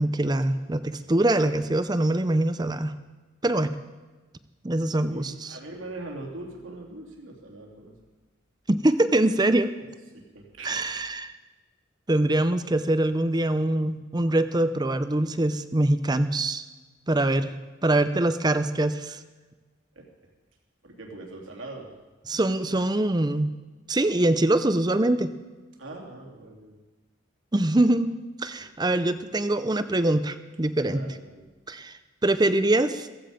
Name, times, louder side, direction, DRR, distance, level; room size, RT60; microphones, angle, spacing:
voice 1, 0.0-2.9 3.4-3.7 4.6-5.5 8.7-9.7 10.6-11.3 12.1-16.6 17.1-17.5 17.8-19.2 22.3-23.5 23.9-25.3 27.5-28.1 28.4-31.0 31.7-31.9 32.2-33.1, right 1 dB, 20° right, 11 dB, 0.6 m, -23 dB
voice 2, 5.0-7.9 9.8-9.9 10.1-10.8 19.9-20.0 20.8-21.9 25.8-26.8 28.6-28.7 29.0-29.1 30.9-31.5, right 2 dB, 85° right, -1 dB, 3.1 m, -41 dB
15.5 x 15.5 x 5.2 m, 1.3 s
head